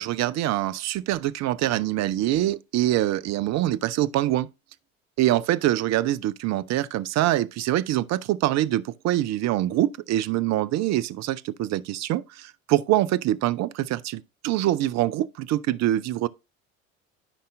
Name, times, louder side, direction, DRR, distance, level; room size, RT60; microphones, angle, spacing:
voice 1, 0.0-4.5 5.2-16.3, right 14 dB, 40° right, 0.6 m, -24 dB
13.0 x 5.6 x 2.5 m
figure-of-eight pair, 60°, 40 cm